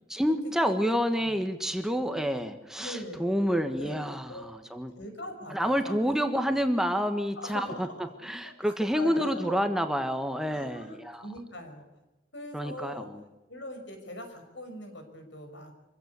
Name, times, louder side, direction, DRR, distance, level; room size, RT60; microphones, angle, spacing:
voice 1, 0.1-4.9 5.5-7.9 8.2-11.3 12.5-13.2, equal, 5° right, 6 dB, 1.4 m, -28 dB
voice 2, 2.8-3.2 3.5-4.5 5.0-6.0 7.4-8.0 8.4-9.7 10.5-11.9 12.3-13.1 13.5-15.7, left 1 dB, 75° left, 5 dB, 5.9 m, -41 dB
25.0 x 16.0 x 8.4 m, 1.0 s
head